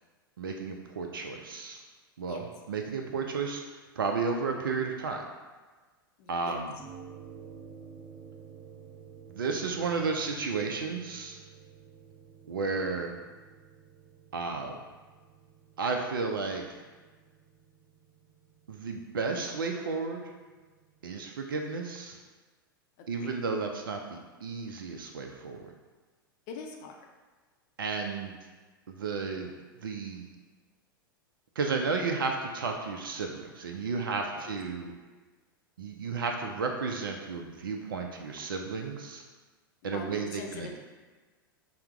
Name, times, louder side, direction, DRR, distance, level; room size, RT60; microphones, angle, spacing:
voice 1, 0.4-1.8 2.2-5.3 6.3-6.7 9.3-11.4 12.4-13.2 14.3-14.8 15.8-16.8 18.7-20.3 21.0-22.2 23.1-25.7 27.8-28.3 28.9-29.5 29.8-30.3 31.6-34.9 35.8-39.2 39.8-40.8, right 4 dB, 70° right, 3 dB, 0.4 m, -33 dB
voice 2, 6.2-6.6 23.0-23.3 26.5-27.0 34.3-34.4 39.8-40.8, left 4 dB, 40° left, 1 dB, 0.5 m, -43 dB
sound 1, 6.8-21.3, right 7 dB, 20° right, 0.8 m, -52 dB
5.7 x 2.1 x 3.4 m, 1.3 s
figure-of-eight pair, 95°, 12 cm